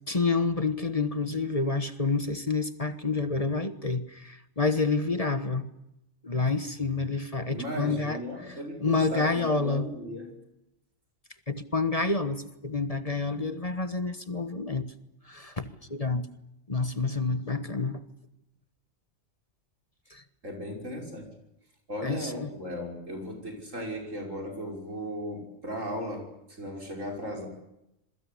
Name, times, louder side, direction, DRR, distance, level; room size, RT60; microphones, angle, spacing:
voice 1, 0.1-5.7 6.2-8.2 8.5-8.6 8.8-9.9 11.5-14.9 15.3-16.2 16.7-18.0 20.1-20.2 22.0-22.5, left 3 dB, 30° left, 10 dB, 1.4 m, -28 dB
voice 2, 7.5-10.3 20.4-21.3 21.9-26.3 26.6-27.5, equal, 90° right, 2 dB, 6.2 m, -36 dB
27.5 x 22.5 x 8.6 m, 0.86 s
omnidirectional pair, 1.3 m